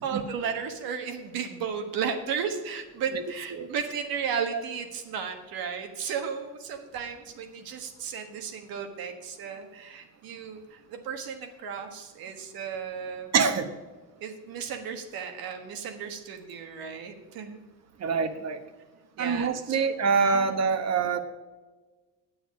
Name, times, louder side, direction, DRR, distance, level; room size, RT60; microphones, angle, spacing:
voice 1, 0.0-13.3 14.2-17.6 19.2-19.9 20.3-20.6, right 6 dB, 75° right, 6 dB, 1.4 m, -34 dB
voice 2, 13.3-13.7 18.0-18.6 19.2-21.2, right 5 dB, 45° right, 9 dB, 1.1 m, -25 dB
8.8 x 7.0 x 6.3 m, 1.3 s
cardioid pair, 90°, 35 cm